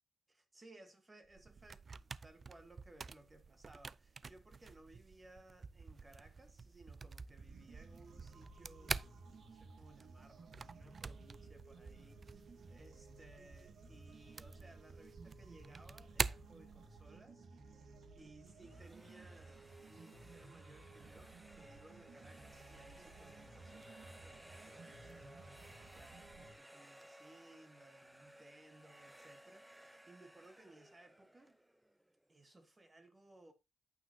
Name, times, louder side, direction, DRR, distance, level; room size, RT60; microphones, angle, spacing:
voice 1, 0.3-31.6 32.3-33.5, right 2 dB, 30° right, 1.4 m, -62 dB
sound 1, 1.2-17.2, right 4 dB, 45° right, 0.4 m, -47 dB
sound 2, 7.4-26.5, right 3 dB, 70° right, 1.6 m, -57 dB
sound 3, 18.5-32.3, equal, 10° right, 0.7 m, -60 dB
9.3 x 8.4 x 2.8 m
cardioid pair, 80°, 0 cm